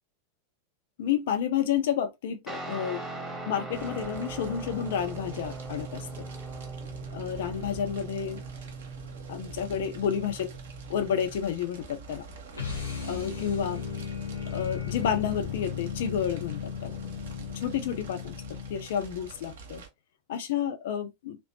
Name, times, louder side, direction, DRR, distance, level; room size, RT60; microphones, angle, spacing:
voice 1, 1.0-3.0 3.5-6.3 7.1-8.4 9.3-10.5 10.9-12.3 13.0-13.8 14.5-17.1 17.5-18.4 18.7-19.8 20.3-21.4, left 8 dB, 55° left, 0.4 m, -30 dB
Guitar, 2.5-11.4, right 3 dB, 5° left, 1.0 m, -40 dB
Fire, 3.7-19.9, right 3 dB, 55° right, 0.8 m, -46 dB
sound 1, 12.5-19.0, left 7 dB, 80° left, 0.9 m, -36 dB
2.9 x 2.0 x 2.8 m
figure-of-eight pair, 90°, 0 cm